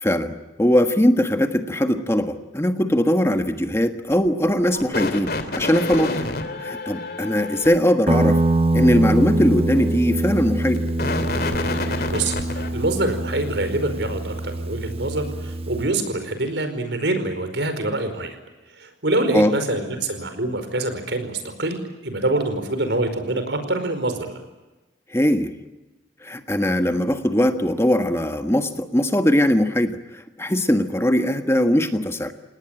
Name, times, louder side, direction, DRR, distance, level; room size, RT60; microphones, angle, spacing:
voice 1, 0.0-6.3 6.6-8.4 8.7-10.8 19.3-19.5 25.1-25.5 26.2-30.0 30.4-32.3, equal, 15° left, 7 dB, 1.5 m, -20 dB
sound 1, 4.6-7.8 10.6-12.7, left 2 dB, 60° left, 2.9 m, -28 dB
Guitar, 8.1-15.9, right 2 dB, 35° right, 1.1 m, -24 dB
voice 2, 12.1-18.4 18.7-24.4, right 2 dB, 80° right, 8 dB, 5.0 m, -25 dB
29.0 x 19.0 x 9.0 m, 1.1 s
head